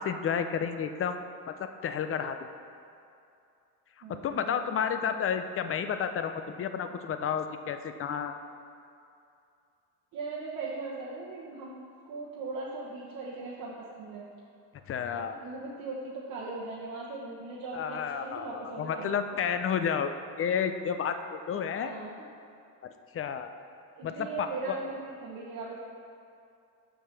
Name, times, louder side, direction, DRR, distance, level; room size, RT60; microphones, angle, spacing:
voice 1, 0.0-2.4 4.0-8.3 14.9-15.4 17.7-20.1 20.4-21.9 23.1-23.5 24.0-24.8, left 7 dB, 40° left, 8 dB, 0.5 m, -31 dB
voice 2, 4.0-5.1 10.1-14.3 15.1-19.2 21.8-22.1 23.9-25.8, right 3 dB, 70° right, -6 dB, 1.2 m, -39 dB
6.2 x 4.8 x 6.7 m, 2.6 s
cardioid pair, 105°, 36 cm